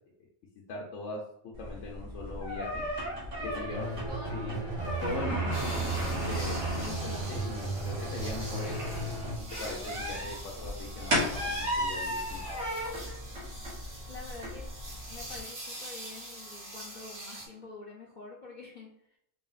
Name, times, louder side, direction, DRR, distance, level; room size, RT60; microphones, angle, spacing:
voice 1, 0.7-1.2 1.6-2.8 3.5-3.9 4.3-4.6 5.0-9.2 9.6-12.6, left 2 dB, 85° left, -2 dB, 1.0 m, -41 dB
sound 1, 1.5-15.4, equal, 75° right, 1.5 m, -36 dB
voice 2, 3.4-4.6 13.8-14.8 15.1-19.2, left 3 dB, 50° left, -3 dB, 0.6 m, -47 dB
sound 2, 3.7-9.4, right 3 dB, 30° right, 0.6 m, -35 dB
sound 3, 5.5-17.5, right 1 dB, 60° right, 1.5 m, -45 dB
4.0 x 2.0 x 3.8 m, 0.73 s
omnidirectional pair, 1.2 m